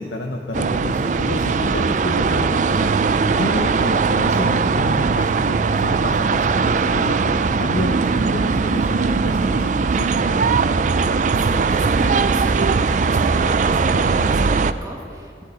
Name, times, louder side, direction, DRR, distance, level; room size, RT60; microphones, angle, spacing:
voice 1, 0.0-2.9 3.3-10.1, left 1 dB, 80° left, 2 dB, 0.9 m, -29 dB
sound 1, 0.5-14.7, right 4 dB, 45° right, 0.4 m, -19 dB
voice 2, 11.4-15.4, right 1 dB, 20° right, -1 dB, 2.1 m, -34 dB
14.5 x 8.5 x 8.4 m, 2.4 s
head